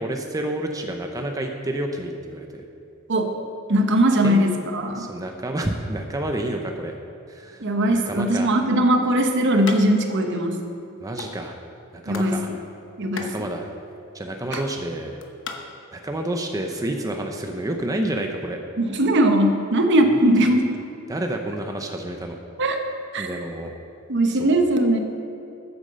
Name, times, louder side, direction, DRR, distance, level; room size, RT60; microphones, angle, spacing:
voice 1, 0.0-2.6 4.2-4.4 4.9-7.0 7.3-8.6 11.0-11.6 11.9-12.5 13.2-13.7 14.1-15.2 15.9-18.6 20.1-20.6 21.1-22.4 23.2-23.7 24.3-24.6, right 1 dB, 15° right, 3 dB, 0.6 m, -29 dB
voice 2, 3.7-5.1 7.6-10.6 12.1-12.4 13.0-13.3 14.5-14.6 18.8-20.7 22.6-22.8 23.1-23.3 24.1-25.0, right 1 dB, 55° right, 5 dB, 1.0 m, -20 dB
sound 1, 9.6-9.8 10.1-10.2 10.5-11.3 11.8-12.4 12.6-15.6, left 5 dB, 60° left, 1.0 m, -36 dB
9.5 x 8.2 x 6.7 m, 2.8 s
head